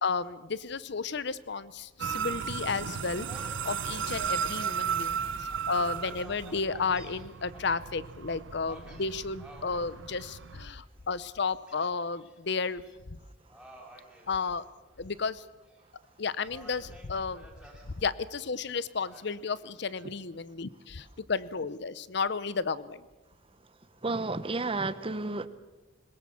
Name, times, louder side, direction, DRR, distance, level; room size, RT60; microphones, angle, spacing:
voice 1, 0.0-3.3 3.6-12.8 13.1-13.2 14.3-14.6 15.0-15.4 16.2-17.5 18.0-23.0, left 4 dB, 65° left, 17 dB, 0.8 m, -33 dB
sound 1, 2.0-10.7, right 7 dB, 85° right, 0.7 m, -35 dB
Gull seagull, 3.2-3.7 4.2-4.3 4.8-7.8 8.7-9.8 10.3-10.8 11.7-12.4 12.7-12.9 13.5-15.0 15.4-16.1 16.5-17.9 19.1-20.1, right 1 dB, 5° right, 5.3 m, -53 dB
voice 2, 24.0-25.5, right 3 dB, 30° right, 13 dB, 1.0 m, -31 dB
22.0 x 20.0 x 7.2 m, 1.2 s
head